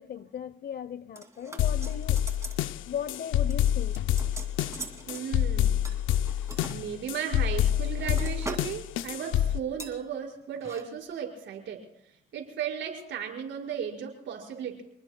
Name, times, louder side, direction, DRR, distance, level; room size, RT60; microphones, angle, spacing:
voice 1, 0.0-2.2 2.9-4.0, left 8 dB, 55° left, 0.8 m, -37 dB
sound 1, 1.2-2.6 2.9-3.2 3.5-5.2 5.8-6.8 7.4-8.8 9.1-9.3 9.8-10.0 10.5-10.8 11.1-11.2, right 2 dB, 15° right, 2.6 m, -42 dB
sound 2, 1.6-9.6, left 11 dB, 90° left, 0.5 m, -27 dB
voice 2, 5.1-5.8 6.7-11.8 12.3-14.8, right 8 dB, 70° right, 5.2 m, -35 dB
28.0 x 20.0 x 2.2 m
cardioid pair, 90°, 20 cm